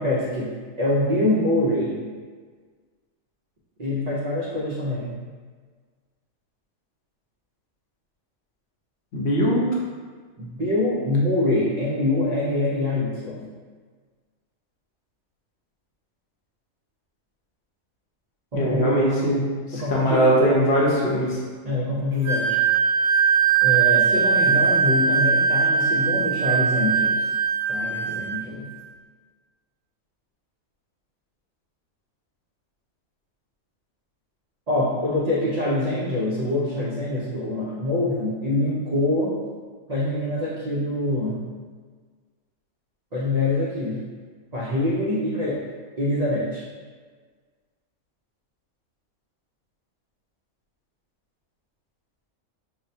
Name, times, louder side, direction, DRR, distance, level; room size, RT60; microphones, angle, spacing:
voice 1, 0.0-2.0 3.8-5.2 10.4-13.5 18.5-19.0 19.7-20.4 21.6-22.6 23.6-27.3 27.7-28.7 34.7-39.4 39.9-41.5 43.1-44.0 44.5-45.6 46.0-46.6, left 1 dB, 60° right, -7 dB, 0.4 m, -25 dB
voice 2, 9.1-9.7 18.5-19.4 19.7-21.4, equal, 60° left, -5 dB, 0.9 m, -20 dB
Wind instrument woodwind instrument, 22.2-28.4, right 6 dB, 10° left, 1.0 m, -20 dB
5.4 x 2.1 x 2.6 m, 1.5 s
omnidirectional pair, 1.5 m